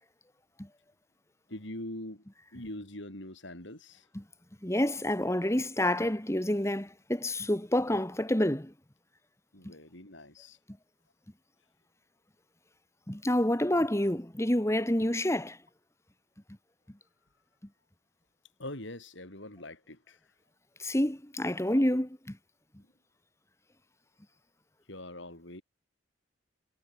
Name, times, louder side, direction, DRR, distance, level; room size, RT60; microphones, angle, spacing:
voice 1, 1.5-2.2 2.5-4.1 9.5-10.6 18.6-20.2 24.9-25.6, left 1 dB, 60° left, 4.6 m, -43 dB
voice 2, 4.6-8.7 13.1-15.6 20.8-22.4, left 1 dB, 15° left, 1.6 m, -28 dB
head